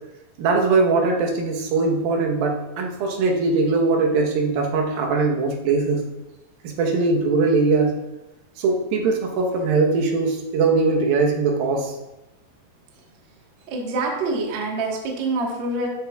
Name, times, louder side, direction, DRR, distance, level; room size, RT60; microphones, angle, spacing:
voice 1, 0.4-6.1 6.6-7.9 8.6-11.9, right 3 dB, 75° right, 1 dB, 2.8 m, -21 dB
voice 2, 13.7-15.9, right 2 dB, 60° right, -1 dB, 1.2 m, -26 dB
13.0 x 7.4 x 2.3 m, 0.98 s
omnidirectional pair, 4.3 m